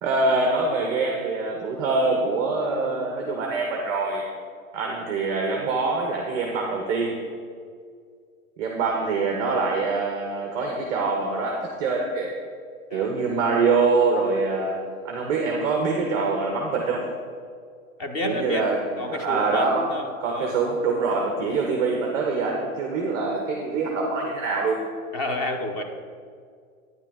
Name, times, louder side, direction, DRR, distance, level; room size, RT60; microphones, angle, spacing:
voice 1, 0.0-4.2 4.7-7.2 8.6-12.3 12.9-14.8 15.0-17.0 18.2-18.8 19.1-19.9 20.2-24.8, right 3 dB, 10° right, 0 dB, 0.4 m, -24 dB
voice 2, 18.0-18.7 19.0-20.6 21.5-21.6 25.1-25.8, left 1 dB, 25° left, 5 dB, 0.7 m, -30 dB
9.6 x 9.5 x 3.7 m, 2.1 s
hypercardioid pair, 155°, 42 cm